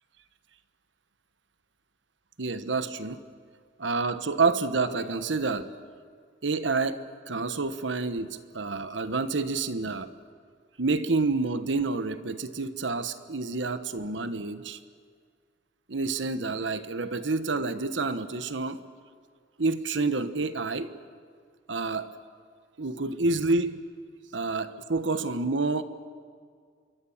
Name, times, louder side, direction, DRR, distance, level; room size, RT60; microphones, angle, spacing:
voice 1, 2.4-3.2 3.8-5.7 6.4-10.1 10.8-14.8 15.9-18.8 19.6-20.9 21.7-22.1 22.8-23.8 24.3-25.8, right 3 dB, 80° right, 12 dB, 1.2 m, -28 dB
26.5 x 23.0 x 7.3 m, 2.1 s
head